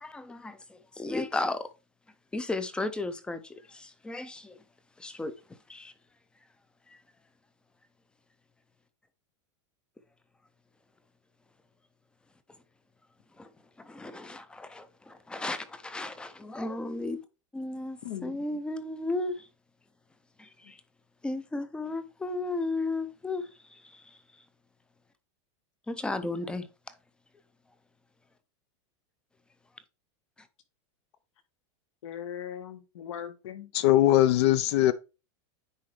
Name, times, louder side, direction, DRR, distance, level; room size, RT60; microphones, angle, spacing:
voice 1, 0.0-1.6 2.3-4.6 5.0-5.3 5.7-5.9 6.9-7.0 13.4-13.5 13.8-17.2 17.5-19.5 20.4-20.8 21.2-24.0 25.9-26.7, left 2 dB, 5° left, 0.5 m, -34 dB
voice 2, 18.0-18.6 20.6-20.7 32.0-33.7, left 9 dB, 80° left, 1.3 m, -40 dB
voice 3, 33.7-34.9, left 14 dB, 60° left, 0.5 m, -21 dB
9.7 x 3.8 x 3.2 m
supercardioid pair, 155°, 16 cm